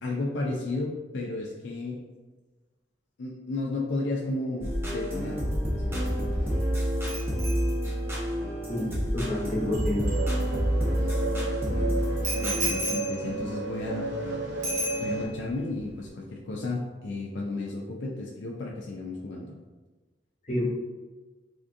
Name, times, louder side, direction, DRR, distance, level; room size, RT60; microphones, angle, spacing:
voice 1, 0.0-2.0 3.2-6.6 11.0-11.1 11.7-14.1 15.0-19.5, left 2 dB, 75° left, -2 dB, 0.4 m, -33 dB
sound 1, 4.6-12.7, equal, 15° right, 0.5 m, -28 dB
Bicycle bell, 7.1-10.9 12.2-14.3 14.6-15.5 15.8-16.1, right 1 dB, 45° right, 1.0 m, -36 dB
voice 2, 8.7-10.2 20.4-20.6, left 1 dB, 40° left, -4 dB, 0.9 m, -29 dB
sound 2, 10.0-15.3, right 3 dB, 75° right, 0.6 m, -33 dB
3.5 x 2.5 x 2.4 m, 1.2 s
head